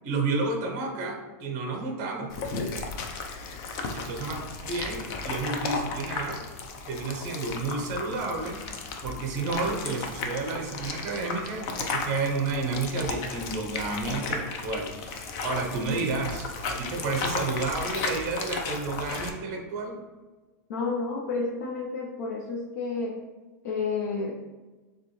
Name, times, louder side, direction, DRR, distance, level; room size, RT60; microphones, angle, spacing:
voice 1, 0.0-2.3 3.9-6.4 6.9-8.6 9.0-20.0, right 3 dB, 35° right, 2 dB, 0.8 m, -31 dB
sound 1, 2.3-19.3, left 4 dB, 30° left, 0.4 m, -34 dB
voice 2, 20.7-23.2 23.6-24.3, left 4 dB, 75° left, -2 dB, 0.7 m, -30 dB
6.8 x 2.3 x 3.1 m, 1.3 s
supercardioid pair, 180°, 9 cm